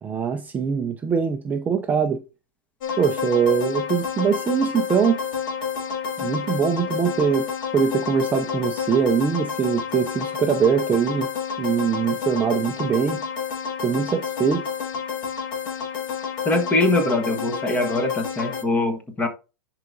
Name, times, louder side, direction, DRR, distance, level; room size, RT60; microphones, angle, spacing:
voice 1, 0.0-2.2 3.0-5.2 6.2-11.3 11.6-13.2 13.8-14.6, right 7 dB, 15° right, 0.5 m, -22 dB
sound 1, 2.8-18.6, left 6 dB, 65° left, 2.1 m, -29 dB
voice 2, 16.4-19.3, left 2 dB, 10° left, 1.3 m, -22 dB
10.5 x 4.8 x 2.7 m
hypercardioid pair, 140°, 12 cm